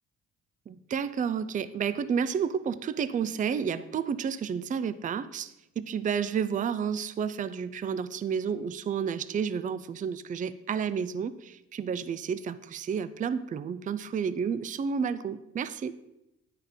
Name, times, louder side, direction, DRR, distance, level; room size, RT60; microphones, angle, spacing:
voice 1, 0.7-15.9, right 7 dB, 25° right, 14 dB, 0.4 m, -31 dB
9.9 x 5.7 x 3.5 m, 0.89 s
cardioid pair, 90°, 30 cm